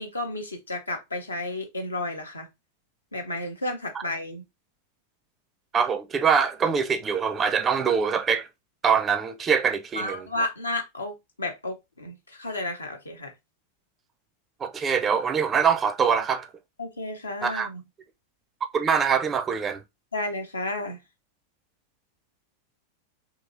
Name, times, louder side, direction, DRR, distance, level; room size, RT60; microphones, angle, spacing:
voice 1, 0.0-2.5 3.1-4.4 10.0-13.3 16.8-17.8 20.1-21.0, left 2 dB, 80° left, 0.7 m, -32 dB
voice 2, 5.7-8.5 8.8-10.3 14.6-16.5 17.4-17.7 18.7-19.8, right 6 dB, 20° right, 0.4 m, -24 dB
2.9 x 2.8 x 2.5 m
figure-of-eight pair, 90°, 0 cm